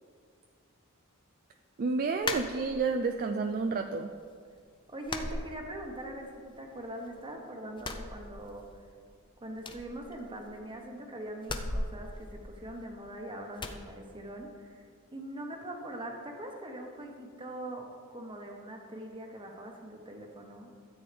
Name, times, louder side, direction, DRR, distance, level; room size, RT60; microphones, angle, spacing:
voice 1, 1.8-4.1, right 4 dB, 40° right, 5 dB, 0.4 m, -30 dB
sound 1, 2.2-3.1 3.5-4.2 4.5-4.6 5.0-6.2 6.5-7.3 7.7-8.9 9.1-9.2 9.6-10.7 11.4-13.1 13.6-13.8, left 2 dB, 20° left, 0.5 m, -38 dB
voice 2, 4.9-8.6 9.4-20.7, right 1 dB, 25° right, 1 dB, 1.1 m, -42 dB
13.0 x 8.6 x 3.4 m, 2.1 s
head